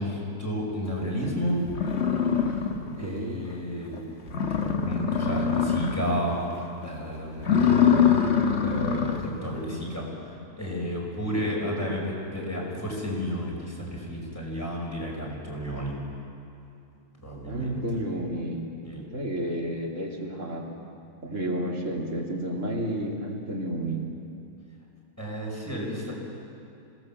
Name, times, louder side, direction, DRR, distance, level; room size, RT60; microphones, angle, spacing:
voice 1, 0.0-1.6 3.0-4.0 4.5-6.4 6.8-7.9 8.6-10.1 10.6-16.0 17.2-18.0 18.8-19.0 25.2-26.1, equal, 10° left, -3 dB, 5.9 m, -32 dB
sound 1, 1.2-1.3 1.7-3.1 3.5-3.6 4.0-4.1 4.3-6.2 6.5-6.9 7.3-9.4, left 7 dB, 45° left, 1.6 m, -24 dB
voice 2, 3.0-3.4 11.3-11.5 11.8-11.9 17.4-18.7 19.0-20.6 21.2-24.0, right 1 dB, 55° right, -1 dB, 3.0 m, -31 dB
27.0 x 18.5 x 7.6 m, 2.7 s
omnidirectional pair, 1.6 m